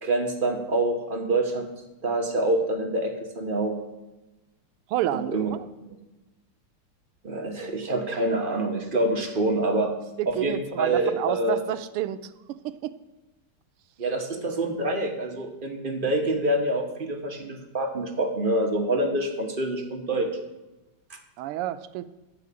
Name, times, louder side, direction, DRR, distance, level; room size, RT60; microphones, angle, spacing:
voice 1, 0.0-1.7 2.0-3.8 5.1-5.5 5.9-6.0 7.2-9.9 10.3-11.6 14.0-20.3 21.1-21.2, right 2 dB, 35° right, 3 dB, 1.0 m, -26 dB
voice 2, 4.9-5.6 10.2-12.9 21.4-22.0, right 13 dB, 90° right, 11 dB, 1.5 m, -30 dB
11.5 x 4.9 x 8.4 m, 1.0 s
omnidirectional pair, 2.4 m